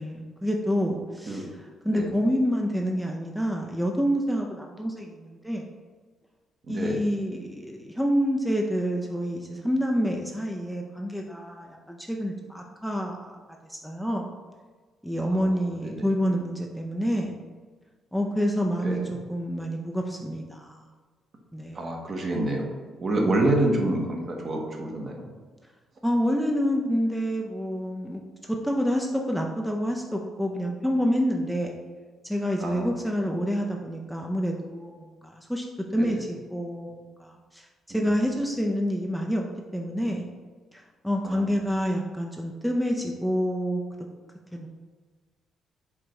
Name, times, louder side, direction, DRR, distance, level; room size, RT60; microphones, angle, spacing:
voice 1, 0.0-1.5 1.8-5.7 6.7-13.4 13.7-14.3 15.0-17.4 18.1-20.8 21.5-21.8 26.0-31.8 32.2-35.7 35.9-36.9 37.2-39.4 39.7-40.3 40.7-43.8 44.5-44.7, equal, ahead, 1 dB, 0.4 m, -28 dB
voice 2, 6.7-7.0 15.2-16.1 18.8-19.1 21.7-25.3 32.6-32.9 35.9-36.2 37.9-38.1 41.2-41.4, right 1 dB, 45° right, 1 dB, 0.9 m, -28 dB
4.6 x 2.5 x 4.2 m, 1.4 s
cardioid pair, 90°, 0 cm